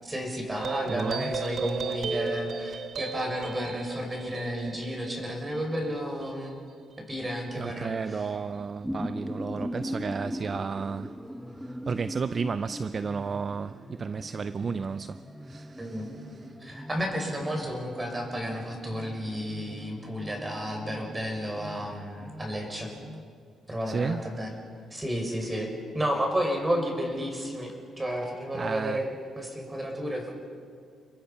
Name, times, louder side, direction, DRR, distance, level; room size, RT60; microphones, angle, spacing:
voice 1, 0.0-6.6 7.1-8.3 15.8-16.1 16.6-22.9 23.7-24.5 24.9-25.7 25.9-30.3, equal, 20° right, 6.4 m, -32 dB
sound 1, 0.6-7.4, right 5 dB, 60° right, 1.7 m, -36 dB
voice 2, 0.9-1.3 7.6-11.2 11.6-16.4 23.9-24.2 28.5-29.0, right 5 dB, 40° right, 0.5 m, -33 dB
sound 2, 8.5-23.2, equal, ahead, 1.1 m, -40 dB
29.5 x 22.0 x 5.9 m
cardioid pair, 90°, 0 cm